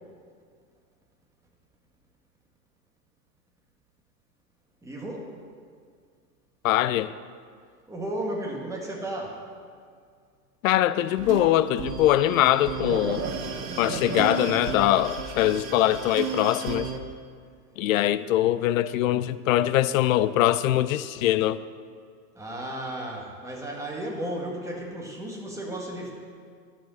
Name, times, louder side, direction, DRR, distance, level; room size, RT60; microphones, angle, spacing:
voice 1, 4.8-5.3 7.9-9.4 17.8-17.9 22.3-26.1, right 1 dB, 5° right, 1.7 m, -34 dB
voice 2, 6.6-7.1 10.6-13.3 13.8-16.9 17.8-21.6, left 13 dB, 55° left, 0.5 m, -22 dB
sound 1, 11.0-17.0, right 5 dB, 85° right, 1.4 m, -33 dB
12.0 x 5.2 x 7.0 m
hypercardioid pair, 125°, 48 cm